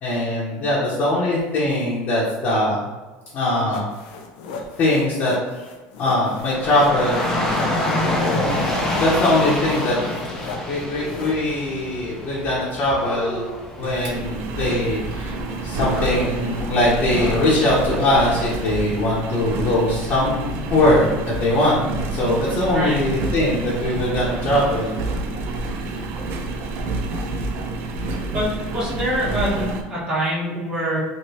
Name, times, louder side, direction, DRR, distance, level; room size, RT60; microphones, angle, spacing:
voice 1, 0.0-2.9 3.3-3.9 4.8-5.3 6.0-7.3 8.1-8.5 8.9-10.0 10.4-13.5 13.8-15.3 15.6-21.8 22.1-24.9, left 1 dB, 50° left, -7 dB, 1.0 m, -21 dB
sound 1, 3.7-11.9, left 4 dB, 85° left, 0.5 m, -36 dB
Dog / Rain, 6.4-18.6, left 1 dB, 10° left, 0.7 m, -27 dB
Engine, 13.8-29.8, right 2 dB, 60° right, 0.5 m, -28 dB
voice 2, 22.7-23.0 28.3-31.0, right 1 dB, 25° right, -8 dB, 1.5 m, -25 dB
3.1 x 2.8 x 2.8 m, 1.3 s
supercardioid pair, 120°, 4 cm